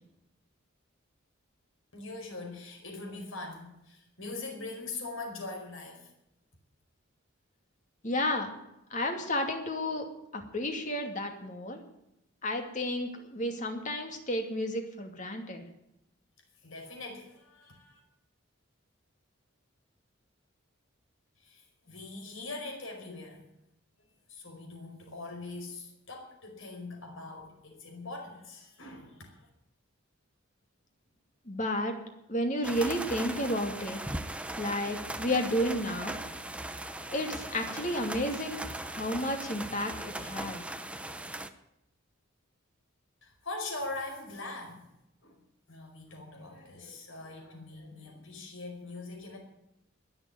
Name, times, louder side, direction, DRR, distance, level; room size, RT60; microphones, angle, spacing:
voice 1, 1.9-6.1 16.6-18.0 21.4-23.5 24.3-29.4 43.2-44.8 45.2-45.4 45.7-49.4, left 2 dB, 75° left, 2 dB, 5.0 m, -42 dB
voice 2, 8.0-8.5 8.9-10.1 10.3-11.8 12.4-15.6 31.5-32.0 32.3-34.0 34.6-36.2 37.1-40.6, left 1 dB, 35° left, 4 dB, 2.6 m, -32 dB
sound 1, 32.6-41.5, right 1 dB, 5° right, 0.8 m, -39 dB
21.0 x 7.0 x 9.6 m, 0.85 s
head